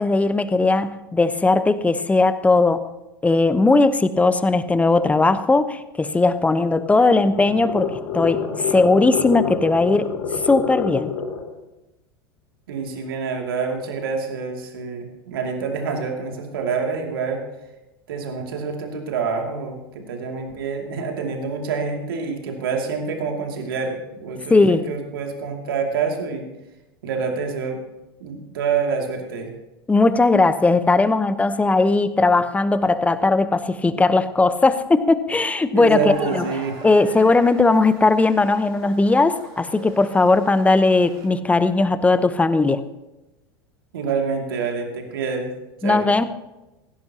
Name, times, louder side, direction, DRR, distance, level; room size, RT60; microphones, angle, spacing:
voice 1, 0.0-2.8 3.2-10.1 10.4-11.1 24.5-24.8 29.9-36.5 36.8-42.8 45.8-46.2, left 3 dB, 10° left, 13 dB, 0.8 m, -18 dB
sound 1, 6.6-11.5, left 6 dB, 60° left, 2.9 m, -28 dB
voice 2, 12.7-17.4 18.1-26.5 27.0-27.8 28.2-29.5 35.7-36.8 37.2-37.3 43.9-45.5 45.8-46.1, right 5 dB, 65° right, 2 dB, 2.5 m, -27 dB
sound 2, 36.0-41.3, right 3 dB, 50° right, 4.8 m, -39 dB
16.5 x 16.0 x 2.9 m, 0.99 s
figure-of-eight pair, 80°, 13 cm